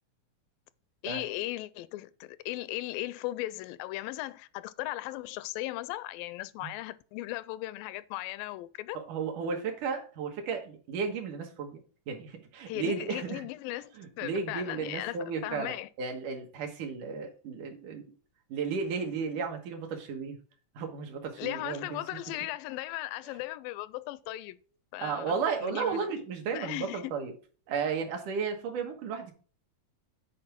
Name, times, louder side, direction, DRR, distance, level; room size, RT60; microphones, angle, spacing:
voice 1, 1.0-9.0 12.7-15.2 15.4-15.9 21.4-24.6 24.9-26.2 26.5-27.1, left 17 dB, 85° left, 2.3 m, -37 dB
voice 2, 8.9-11.8 12.1-13.4 14.0-18.1 18.5-20.4 20.8-22.0 25.0-27.3 27.7-29.3, right 5 dB, 70° right, 2.7 m, -34 dB
8.7 x 4.6 x 4.5 m
omnidirectional pair, 3.9 m